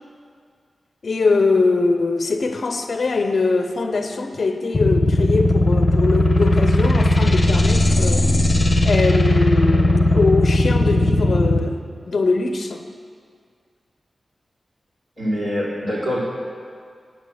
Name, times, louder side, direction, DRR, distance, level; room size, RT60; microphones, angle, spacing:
voice 1, 1.0-8.3 8.8-11.8 12.1-12.9, left 3 dB, 55° left, 7 dB, 0.6 m, -22 dB
sound 1, 4.7-11.6, left 1 dB, 35° left, 1.1 m, -17 dB
voice 2, 15.2-16.2, equal, 55° right, -7 dB, 3.4 m, -24 dB
8.7 x 7.9 x 7.5 m, 2.2 s
wide cardioid pair, 110°, 0 cm